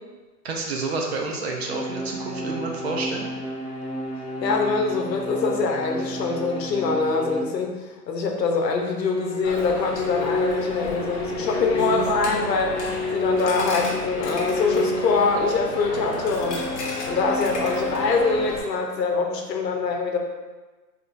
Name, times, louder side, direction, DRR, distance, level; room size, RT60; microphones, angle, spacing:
voice 1, 0.4-3.3, right 3 dB, 40° right, 0 dB, 0.5 m, -29 dB
sound 1, 1.6-7.5 8.5-15.5 16.3-18.6, left 1 dB, 5° right, 1.4 m, -30 dB
voice 2, 4.4-12.8 13.1-16.6 17.1-20.2, left 4 dB, 85° left, 2 dB, 0.9 m, -24 dB
Coin (dropping), 9.4-18.6, left 2 dB, 45° left, 1.0 m, -33 dB
4.9 x 3.0 x 2.5 m, 1.2 s
hypercardioid pair, 155°, 49 cm